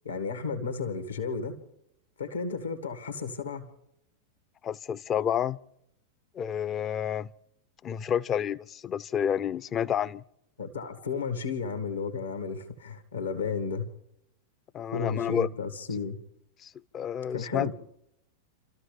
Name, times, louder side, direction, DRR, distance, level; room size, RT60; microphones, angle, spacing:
voice 1, 0.0-1.6 2.2-3.7 10.6-13.9 14.9-16.2 17.3-17.7, left 5 dB, 70° left, 1.9 m, -33 dB
voice 2, 4.6-5.6 6.3-7.3 7.8-10.2 14.7-15.5 16.6-17.7, left 9 dB, 25° left, 0.6 m, -29 dB
29.5 x 14.0 x 3.3 m
figure-of-eight pair, 90°, 0 cm